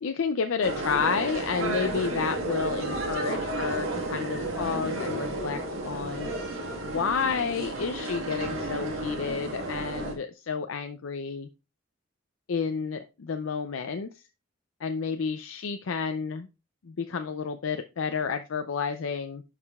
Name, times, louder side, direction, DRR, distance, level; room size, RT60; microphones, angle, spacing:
voice 1, 0.0-6.3 6.8-11.5 12.5-14.2 14.8-16.5 16.8-19.4, left 5 dB, 75° left, 8 dB, 0.5 m, -30 dB
sound 1, 0.6-10.1, right 1 dB, 80° right, 1.6 m, -32 dB
11.0 x 4.9 x 2.3 m, 0.28 s
head